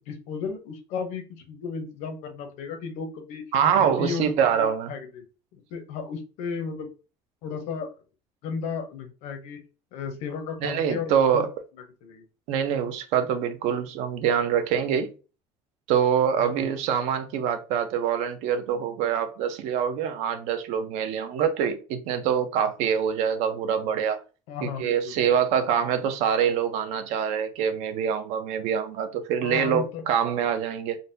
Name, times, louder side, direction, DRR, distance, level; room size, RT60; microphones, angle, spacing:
voice 1, 0.0-3.4 3.7-5.2 5.7-6.9 7.4-7.9 8.4-9.6 9.9-11.5 12.0-12.2 16.4-16.7 24.5-25.4 29.4-30.0, left 5 dB, 60° left, 0.7 m, -34 dB
voice 2, 3.5-4.9 10.6-11.5 12.5-15.1 15.9-24.2 24.6-31.0, right 8 dB, 60° right, 0.5 m, -25 dB
3.8 x 2.2 x 2.6 m
cardioid pair, 180°, 13 cm